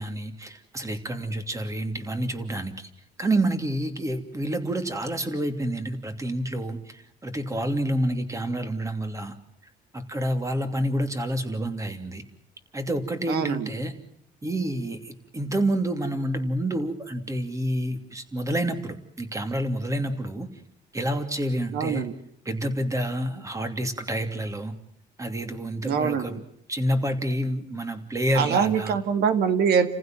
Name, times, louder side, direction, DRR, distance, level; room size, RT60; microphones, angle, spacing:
voice 1, 0.0-2.9 3.2-9.3 9.9-12.2 12.7-13.9 14.4-20.5 20.9-22.1 22.4-24.7 25.2-26.4 26.7-29.0, right 1 dB, 20° right, 7 dB, 2.9 m, -28 dB
voice 2, 13.3-13.7 21.7-22.1 25.8-26.4 28.3-29.9, right 7 dB, 70° right, 10 dB, 2.0 m, -24 dB
30.0 x 15.5 x 7.6 m, 0.75 s
cardioid pair, 110°, 17 cm